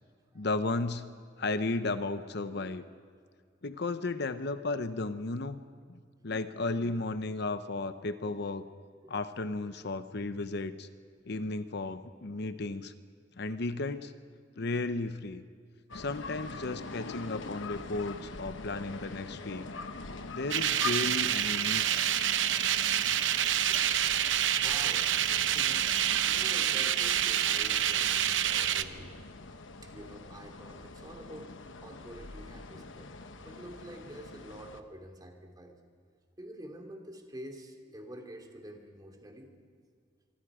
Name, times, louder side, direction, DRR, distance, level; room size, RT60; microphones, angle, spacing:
voice 1, 0.3-1.1 1.4-2.8 3.6-5.6 5.9-8.6 9.1-10.9 11.3-12.9 13.4-14.1 14.6-15.4 15.9-19.7 20.3-22.1, left 2 dB, 60° left, 11 dB, 0.8 m, -34 dB
sound 1, 15.9-34.8, left 3 dB, 90° left, 1.0 m, -44 dB
sound 2, 20.5-28.8, right 10 dB, 75° right, 0.8 m, -27 dB
voice 2, 24.6-25.1 25.5-29.3 29.8-33.1 33.4-35.8 36.4-39.6, equal, 20° right, 3 dB, 2.7 m, -48 dB
25.5 x 24.5 x 5.0 m, 2.1 s
head